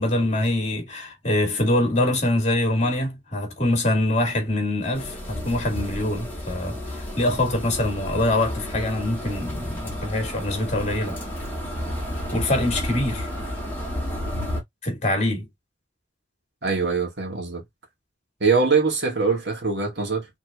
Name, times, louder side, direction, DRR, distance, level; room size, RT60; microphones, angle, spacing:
voice 1, 0.0-11.2 12.3-13.3 14.8-15.5, left 1 dB, 35° left, 2.5 m, -24 dB
sound 1, 4.9-14.6, left 1 dB, 10° left, 2.4 m, -32 dB
voice 2, 16.6-17.6 18.4-20.3, right 4 dB, 60° right, 2.1 m, -23 dB
5.0 x 3.8 x 2.5 m
head